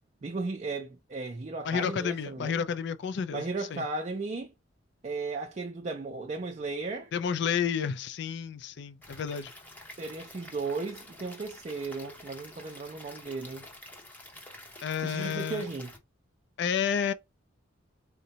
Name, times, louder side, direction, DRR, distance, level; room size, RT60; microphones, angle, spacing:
voice 1, 0.2-2.6 3.3-4.5 5.0-7.1 10.0-13.7 15.0-15.9, right 3 dB, 35° right, 0.4 m, -35 dB
voice 2, 1.6-3.4 3.7-3.8 7.1-9.5 14.8-15.7 16.6-17.1, left 7 dB, 60° left, 0.4 m, -30 dB
Stream / Liquid, 9.0-16.0, left 1 dB, 10° left, 0.7 m, -49 dB
3.8 x 2.1 x 2.7 m
head